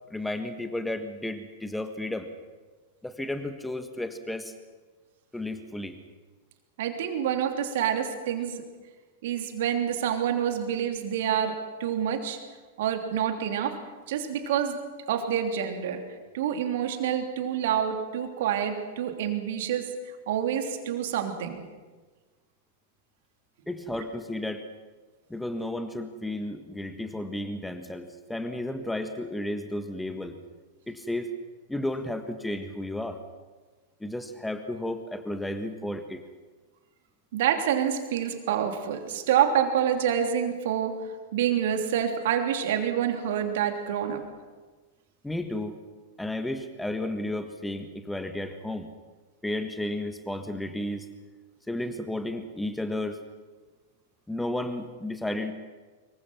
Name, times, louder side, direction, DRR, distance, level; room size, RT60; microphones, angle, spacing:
voice 1, 0.1-2.3 3.0-4.5 5.3-6.0 23.7-24.7 25.3-30.3 30.9-31.3 31.7-33.2 34.0-36.2 45.2-45.8 46.2-48.9 49.4-51.1 51.7-53.2 54.3-55.5, left 1 dB, 5° left, 8 dB, 1.5 m, -33 dB
voice 2, 6.8-8.6 9.2-12.4 12.8-13.8 14.1-14.8 15.1-16.0 16.3-19.9 20.3-21.6 37.3-41.0 41.3-44.2, right 9 dB, 55° right, 5 dB, 3.1 m, -27 dB
25.0 x 23.0 x 6.1 m, 1.3 s
figure-of-eight pair, 95°, 0 cm